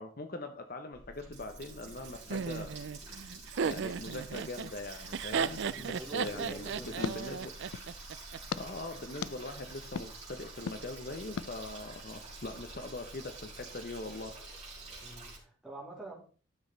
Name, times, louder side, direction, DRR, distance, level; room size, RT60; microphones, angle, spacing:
voice 1, 0.0-2.8 3.6-7.5 8.6-14.3, left 2 dB, 45° left, 7 dB, 0.8 m, -42 dB
Water tap faucet, 0.9-15.4, right 3 dB, 35° right, 4.0 m, -48 dB
Laughter, 2.3-8.4, right 6 dB, 55° right, 0.4 m, -35 dB
voice 2, 5.6-7.2 15.0-16.1, right 2 dB, 5° right, -5 dB, 3.2 m, -47 dB
sound 1, 6.2-8.0 8.5-8.6 9.2-9.3 10.0-10.1 10.7-10.8 11.4-11.5, left 6 dB, 90° left, 0.4 m, -39 dB
12.0 x 6.4 x 3.9 m, 0.40 s
head